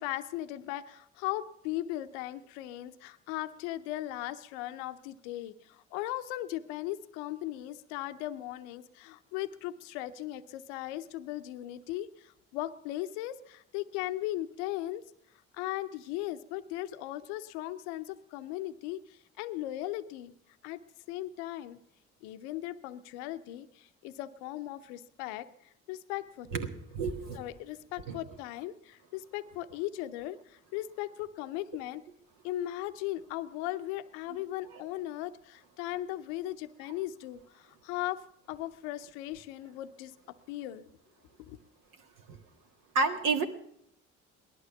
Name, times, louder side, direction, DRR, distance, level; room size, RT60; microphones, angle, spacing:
voice 1, 0.0-15.0 15.5-20.3 20.6-20.8 21.1-21.8 22.2-25.5 25.9-26.5 27.3-32.0 32.4-38.2 38.5-40.1 40.5-40.8 41.4-41.6, left 14 dB, 85° left, 11 dB, 0.6 m, -38 dB
voice 2, 26.5-27.4 28.1-28.2 42.3-42.4 42.9-43.4, right 4 dB, 70° right, 5 dB, 1.7 m, -30 dB
18.0 x 11.5 x 7.0 m, 0.72 s
hypercardioid pair, 50°, 33 cm